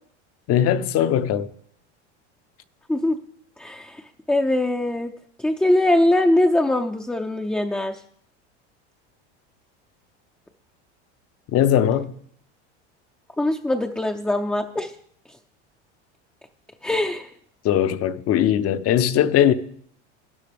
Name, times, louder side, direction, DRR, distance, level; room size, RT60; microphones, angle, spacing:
voice 1, 0.5-1.5 11.5-12.1 17.6-19.5, left 10 dB, 45° left, 0.7 m, -19 dB
voice 2, 3.6-4.0 4.3-5.1 5.4-8.0 13.4-14.9 16.8-17.3, left 1 dB, 5° left, 0.5 m, -22 dB
12.5 x 9.7 x 3.5 m
supercardioid pair, 100°, 34 cm